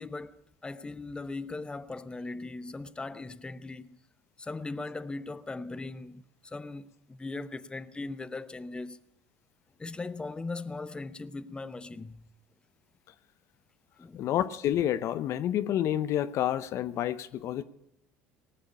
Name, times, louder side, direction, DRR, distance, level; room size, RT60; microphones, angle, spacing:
voice 1, 0.0-4.0 4.4-9.0 9.8-12.3 14.0-14.3, left 3 dB, 15° left, 0.8 m, -39 dB
voice 2, 14.1-17.6, left 11 dB, 60° left, 0.7 m, -29 dB
18.5 x 7.7 x 10.0 m
supercardioid pair, 80°, 6 cm